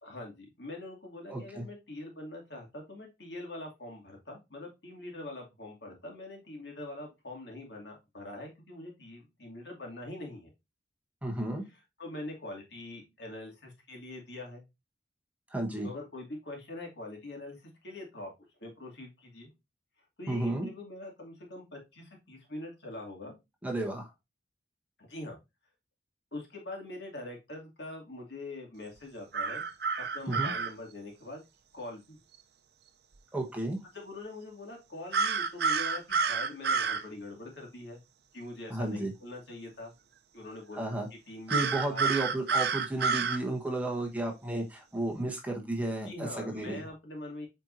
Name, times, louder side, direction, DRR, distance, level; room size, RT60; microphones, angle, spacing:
voice 1, 0.0-10.5 12.0-14.6 15.8-18.3 18.6-19.5 20.2-23.3 25.0-25.4 26.3-29.7 30.0-31.4 31.7-32.2 33.9-38.0 38.3-39.9 40.3-40.8 41.3-42.1 46.1-47.5, left 2 dB, 75° left, 0 dB, 2.5 m, -43 dB
voice 2, 1.3-1.6 11.2-11.6 15.5-15.9 20.3-20.7 23.6-24.1 30.3-30.5 33.3-33.8 38.7-39.1 40.7-41.1 41.5-46.9, right 1 dB, 10° right, 1 dB, 1.3 m, -33 dB
sound 1, 29.3-30.7 35.1-37.0 41.5-43.4, right 5 dB, 60° right, 0.6 m, -29 dB
8.2 x 4.4 x 2.7 m, 0.23 s
head